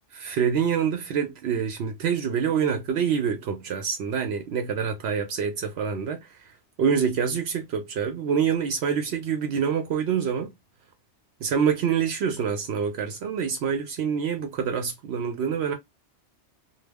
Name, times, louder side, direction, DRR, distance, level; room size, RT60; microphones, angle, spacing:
voice 1, 0.1-6.2 6.8-10.5 11.4-15.7, right 7 dB, 70° right, 0.8 m, -26 dB
2.2 x 2.0 x 3.4 m
omnidirectional pair, 1.2 m